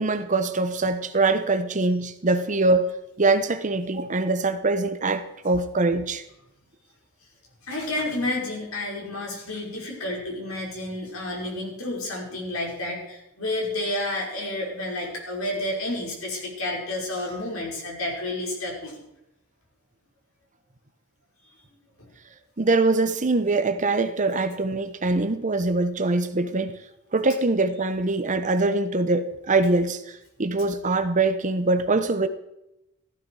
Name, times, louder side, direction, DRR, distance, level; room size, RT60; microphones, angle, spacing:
voice 1, 0.0-2.9 3.2-6.2 22.6-26.8 27.1-32.3, right 3 dB, 35° right, 0.9 m, -23 dB
voice 2, 7.6-19.0 22.0-22.1, left 1 dB, 75° left, 5.5 m, -30 dB
16.0 x 14.0 x 4.9 m
head